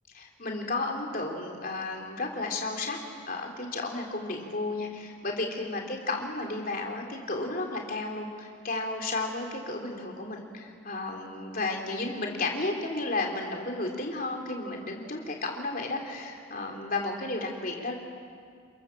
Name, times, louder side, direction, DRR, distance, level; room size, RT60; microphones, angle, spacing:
voice 1, 0.1-3.0 3.3-18.0, left 2 dB, 40° left, 1 dB, 3.4 m, -33 dB
29.0 x 22.5 x 7.5 m, 2.1 s
head